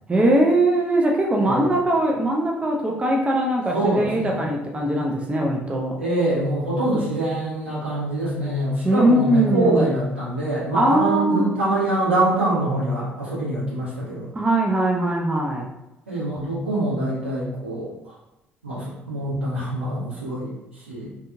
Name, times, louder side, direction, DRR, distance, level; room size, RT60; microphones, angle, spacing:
voice 1, 0.1-6.0 8.8-9.8 10.7-11.4 14.3-15.7, right 1 dB, 20° right, -1 dB, 0.5 m, -21 dB
voice 2, 1.4-1.7 3.7-4.4 6.0-14.3 16.1-18.2 18.6-21.1, right 1 dB, 85° right, -9 dB, 1.0 m, -24 dB
2.6 x 2.6 x 2.3 m, 0.91 s
figure-of-eight pair, 50°, 6 cm